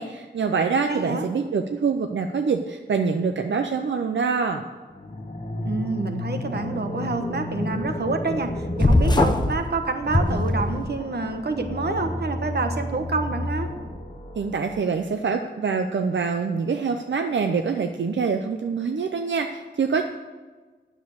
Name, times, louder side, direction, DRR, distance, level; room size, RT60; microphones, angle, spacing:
voice 1, 0.0-4.6 14.4-20.0, right 5 dB, 85° right, 6 dB, 0.6 m, -25 dB
voice 2, 0.9-1.3 5.6-13.7, right 3 dB, 60° right, 6 dB, 1.2 m, -27 dB
sound 1, 4.9-14.8, left 1 dB, 40° left, 1.5 m, -32 dB
sound 2, 8.8-9.5 10.1-11.0, left 2 dB, 25° left, 0.9 m, -20 dB
9.4 x 7.3 x 8.2 m, 1.4 s
wide cardioid pair, 100°, 19 cm